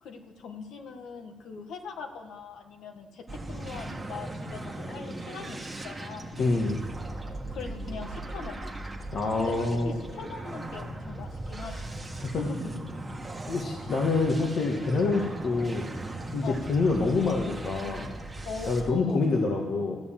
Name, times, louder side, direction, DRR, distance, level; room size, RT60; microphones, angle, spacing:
voice 1, 0.0-6.3 7.5-8.7 9.4-11.9 12.3-12.6 15.0-15.2 16.4-16.6 18.4-19.3, left 5 dB, 75° left, 5 dB, 1.4 m, -41 dB
sound 1, 3.3-18.9, right 1 dB, 10° right, 1.6 m, -38 dB
voice 2, 6.4-6.8 9.1-10.0 12.2-12.4 13.5-15.8 16.3-18.1 18.7-20.0, left 3 dB, 55° left, 1 dB, 1.5 m, -26 dB
13.5 x 6.9 x 7.5 m, 1.5 s
cardioid pair, 90°, 0 cm